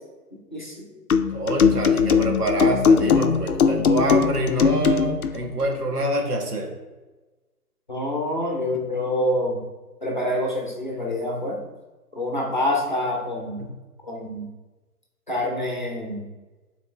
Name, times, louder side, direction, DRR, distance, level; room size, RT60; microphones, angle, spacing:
voice 1, 0.5-0.8 7.9-9.7 10.0-11.6 12.1-13.6 14.0-14.5 15.3-16.2, left 1 dB, 30° left, -1 dB, 0.8 m, -26 dB
sound 1, 1.1-5.4, left 6 dB, 65° left, 0.6 m, -20 dB
voice 2, 1.3-6.7 13.6-13.7, right 1 dB, 70° right, 0 dB, 1.8 m, -26 dB
8.0 x 4.2 x 3.1 m, 1.2 s
hypercardioid pair, 180°, 47 cm